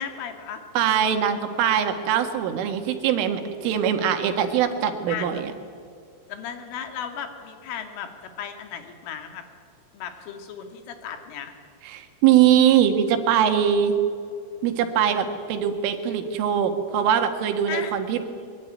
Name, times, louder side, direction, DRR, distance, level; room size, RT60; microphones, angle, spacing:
voice 1, 0.0-0.6 5.1-5.4 6.3-9.4 9.9-11.5 17.7-17.9, left 8 dB, 80° left, 6 dB, 4.5 m, -35 dB
voice 2, 0.8-5.5 11.8-13.9 14.6-18.2, right 9 dB, 80° right, 7 dB, 4.3 m, -22 dB
23.5 x 22.0 x 9.6 m, 2.4 s
omnidirectional pair, 5.6 m